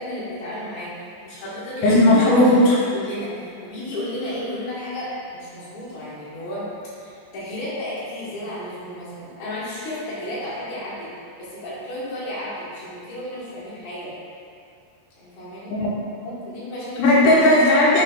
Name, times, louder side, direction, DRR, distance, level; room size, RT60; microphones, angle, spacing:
voice 1, 0.0-2.0 2.4-2.6 2.9-6.7 7.0-14.1 15.2-15.8 16.5-17.1, left 1 dB, 60° left, -10 dB, 2.0 m, -33 dB
voice 2, 1.8-2.8 15.7-15.9 16.3-16.4 17.0-18.0, left 1 dB, 90° left, -6 dB, 2.6 m, -15 dB
5.8 x 3.8 x 2.2 m, 2.4 s
omnidirectional pair, 4.6 m